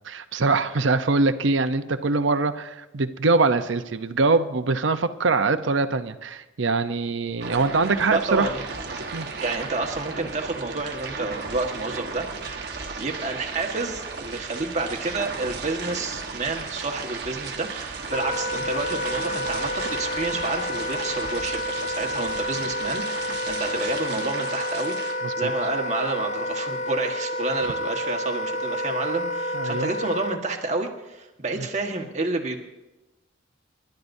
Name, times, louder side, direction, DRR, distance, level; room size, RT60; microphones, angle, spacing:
voice 1, 0.0-8.5 9.1-9.3 25.2-25.5 29.5-29.9 31.6-31.7, right 3 dB, 75° right, 10 dB, 0.7 m, -23 dB
sound 1, 7.4-25.1, right 4 dB, 55° right, 1.3 m, -35 dB
voice 2, 8.1-8.6 9.4-12.7 13.0-32.6, right 3 dB, 35° right, 1 dB, 1.5 m, -29 dB
Wind instrument woodwind instrument, 18.1-30.4, left 1 dB, 35° left, 0.6 m, -30 dB
29.5 x 12.0 x 2.7 m, 1.0 s
head